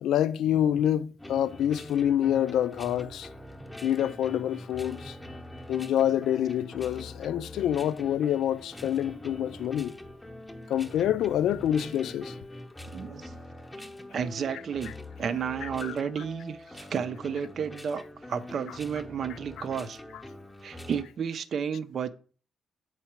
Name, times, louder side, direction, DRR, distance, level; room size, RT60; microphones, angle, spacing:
voice 1, 0.0-3.3 3.8-5.1 5.7-9.9 10.7-12.3 15.6-16.0 19.6-19.7, left 10 dB, 75° left, 0.4 m, -27 dB
sound 1, 1.2-21.1, left 1 dB, 5° left, 0.8 m, -44 dB
voice 2, 12.9-13.3 14.1-18.0 18.3-20.0 20.6-22.1, right 7 dB, 45° right, 0.5 m, -32 dB
8.1 x 4.7 x 4.4 m
cardioid pair, 155°, 0 cm